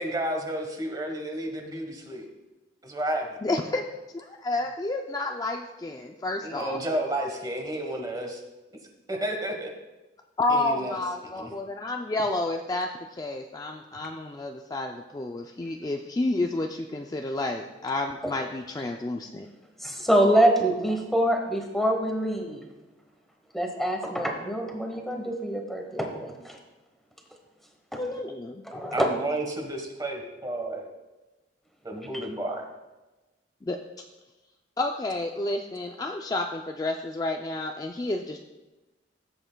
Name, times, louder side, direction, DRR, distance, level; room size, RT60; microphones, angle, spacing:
voice 1, 0.0-2.3 2.8-3.4 6.4-8.4 9.1-9.7 10.5-11.5 28.9-30.9 31.8-32.6, right 1 dB, 20° right, 2 dB, 1.3 m, -31 dB
voice 2, 3.4-3.8 4.1-6.8 10.4-19.5 28.0-28.6 33.7-33.8 34.8-38.4, left 2 dB, 20° left, 3 dB, 0.3 m, -30 dB
voice 3, 19.8-22.7 23.5-26.6 27.9-28.1 28.6-29.1 32.1-32.2, right 1 dB, ahead, 2 dB, 1.0 m, -25 dB
15.0 x 7.8 x 2.2 m, 1.1 s
head